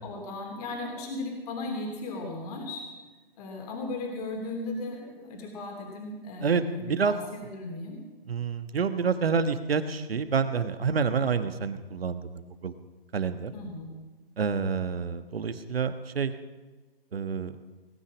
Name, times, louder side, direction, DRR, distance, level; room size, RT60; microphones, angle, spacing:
voice 1, 0.0-2.9 3.4-8.0 13.5-13.9, left 2 dB, 40° left, 1 dB, 3.2 m, -36 dB
voice 2, 6.4-7.2 8.3-12.7 13.1-13.5 14.4-16.3 17.1-17.5, right 6 dB, 75° right, 11 dB, 1.4 m, -28 dB
19.0 x 9.9 x 6.1 m, 1.3 s
hypercardioid pair, 145°, 30 cm